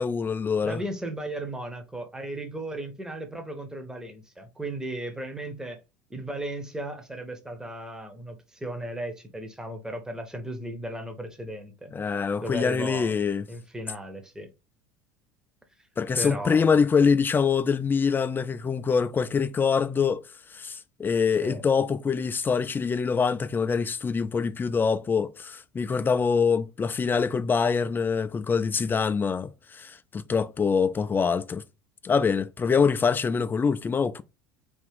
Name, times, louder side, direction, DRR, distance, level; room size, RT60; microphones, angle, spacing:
voice 1, 0.0-0.8 11.9-13.4 16.0-20.2 20.5-31.6 32.0-34.2, left 5 dB, 20° left, 0.3 m, -24 dB
voice 2, 0.6-5.8 6.1-11.9 12.4-13.2 13.5-14.5 16.1-16.7 21.4-21.6, right 1 dB, 5° right, 0.8 m, -36 dB
3.4 x 2.4 x 3.5 m
hypercardioid pair, 75°, 11 cm